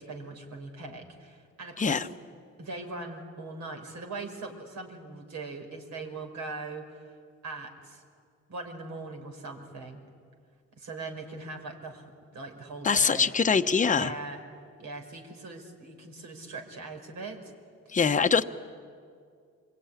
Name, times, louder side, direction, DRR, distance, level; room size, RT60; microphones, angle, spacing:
voice 1, 0.0-2.1 2.6-7.1 7.4-8.0 8.5-10.0 10.8-13.3 13.9-14.4 14.8-17.5, right 3 dB, 65° right, 3 dB, 5.1 m, -40 dB
voice 2, 12.8-14.1 17.9-18.4, left 5 dB, 25° left, 7 dB, 1.0 m, -23 dB
26.5 x 23.0 x 9.8 m, 2.2 s
cardioid pair, 90°, 30 cm